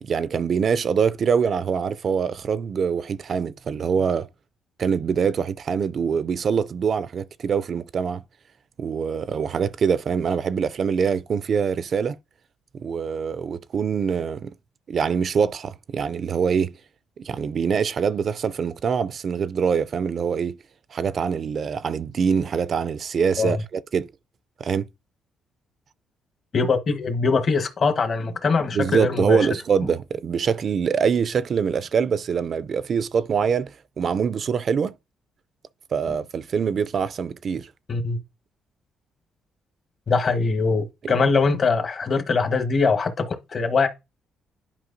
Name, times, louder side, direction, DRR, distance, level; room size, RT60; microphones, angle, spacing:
voice 1, 0.0-4.3 4.8-8.2 8.8-12.2 12.7-14.5 14.9-16.8 17.2-20.6 20.9-24.1 24.6-24.9 28.7-34.9 35.9-37.7, right 6 dB, 50° right, 0.4 m, -24 dB
voice 2, 26.5-29.5 37.9-38.2 40.1-43.9, left 4 dB, 45° left, 1.2 m, -22 dB
10.5 x 4.8 x 2.6 m
cardioid pair, 90°, 0 cm